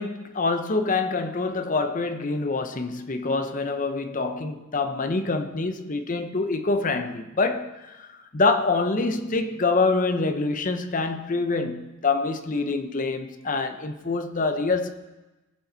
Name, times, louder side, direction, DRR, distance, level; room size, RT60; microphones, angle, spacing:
voice 1, 0.0-14.9, left 3 dB, 40° left, 0.8 m, -26 dB
20.0 x 7.0 x 4.0 m
head